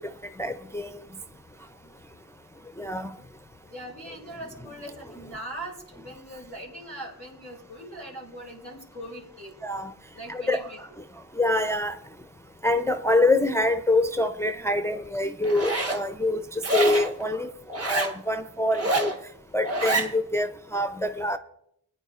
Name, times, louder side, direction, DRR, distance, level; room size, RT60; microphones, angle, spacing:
voice 1, 0.4-1.0 2.8-3.2 9.6-9.9 10.3-10.7 11.4-12.0 12.6-17.5 17.8-19.1 19.5-21.4, left 2 dB, 5° left, 0.5 m, -25 dB
voice 2, 1.8-2.2 3.6-9.6 10.1-10.8, right 1 dB, 75° right, 4.2 m, -41 dB
Zipper (clothing), 15.4-16.0 16.6-17.1 17.7-18.1 18.7-19.2 19.6-20.1, right 1 dB, 35° right, 1.4 m, -26 dB
17.0 x 9.3 x 2.4 m
cardioid pair, 45°, 42 cm